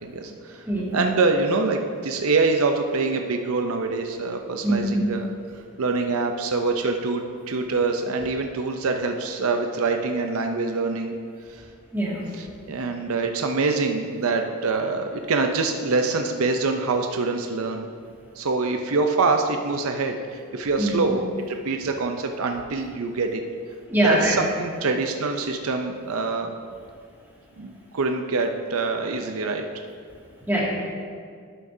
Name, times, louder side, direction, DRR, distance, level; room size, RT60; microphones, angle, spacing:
voice 1, 0.0-0.6 0.9-5.3 5.8-11.1 12.3-17.9 18.4-23.4 24.0-26.5 27.6-29.6, right 3 dB, 70° right, 4 dB, 0.6 m, -25 dB
voice 2, 0.7-1.0 4.6-5.1 11.9-12.2 20.8-21.1 23.9-24.4 30.5-30.6, right 1 dB, 10° right, -6 dB, 2.1 m, -23 dB
11.5 x 8.5 x 2.7 m, 2.1 s
head